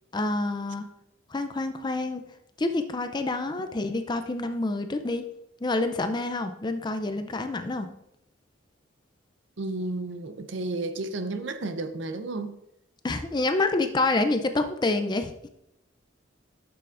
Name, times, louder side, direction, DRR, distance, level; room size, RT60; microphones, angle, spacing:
voice 1, 0.1-0.8 1.3-2.2 2.6-5.2 5.6-7.9 13.0-15.3, left 2 dB, 20° left, 0.4 m, -27 dB
voice 2, 9.6-12.6, right 2 dB, 60° right, 0.6 m, -32 dB
10.5 x 6.9 x 2.5 m
head